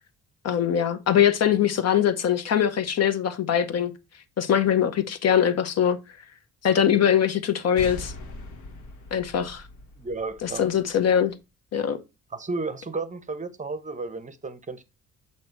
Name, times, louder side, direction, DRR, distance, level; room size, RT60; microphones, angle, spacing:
voice 1, 0.4-3.9 4.4-6.0 6.6-8.1 9.1-9.6 10.4-11.3 11.7-12.0, left 9 dB, 55° left, 0.9 m, -22 dB
sound 1, 7.8-11.2, left 2 dB, 75° left, 1.3 m, -41 dB
voice 2, 10.0-10.7 12.3-14.8, right 3 dB, 25° right, 0.7 m, -33 dB
7.6 x 2.9 x 4.5 m
cardioid pair, 90°, 30 cm